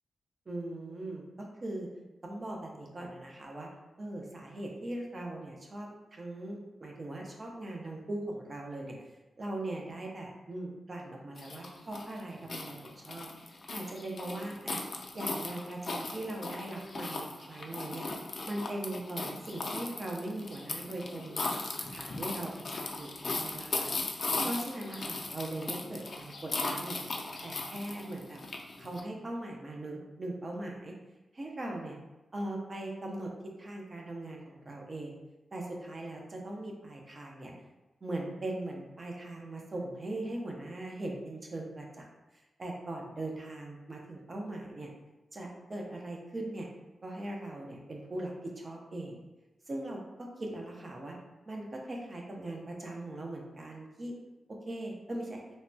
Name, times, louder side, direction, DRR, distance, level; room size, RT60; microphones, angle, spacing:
voice 1, 0.5-1.9 2.2-3.7 4.0-9.0 9.4-13.3 13.7-14.8 15.1-18.1 18.4-21.4 21.8-27.0 27.4-28.4 28.8-30.9 31.3-32.0 32.3-33.3 33.6-35.2 35.5-37.5 38.0-42.1 42.3-44.9 45.3-46.7 47.0-49.2 49.7-51.2 51.5-54.2 54.7-55.4, right 1 dB, 45° right, 0 dB, 0.6 m, -40 dB
sound 1, 11.4-29.0, left 3 dB, 55° left, 0.4 m, -38 dB
3.2 x 2.2 x 2.6 m, 1.1 s
cardioid pair, 65°, 0 cm